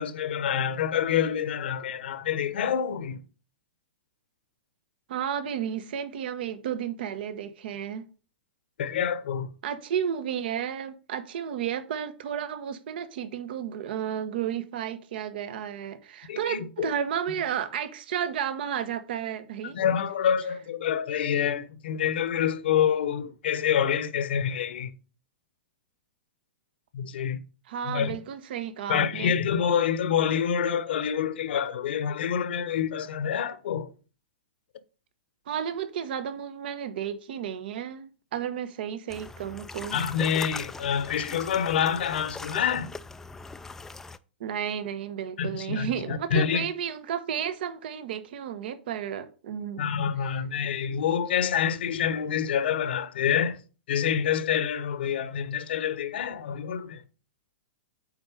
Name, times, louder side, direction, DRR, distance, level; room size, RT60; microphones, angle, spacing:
voice 1, 0.0-3.2 8.8-9.5 16.3-16.9 19.6-24.9 26.9-27.4 27.8-28.2 28.9-33.9 39.9-42.9 45.4-46.7 49.8-53.6 53.9-57.0, left 8 dB, 65° left, 0.9 m, -27 dB
voice 2, 5.1-8.1 9.6-19.8 27.7-29.3 35.5-40.0 44.4-49.9, right 9 dB, 60° right, 1.1 m, -32 dB
sound 1, 39.1-44.2, left 3 dB, 5° left, 0.3 m, -41 dB
8.7 x 4.2 x 5.1 m
hypercardioid pair, 130°, 6 cm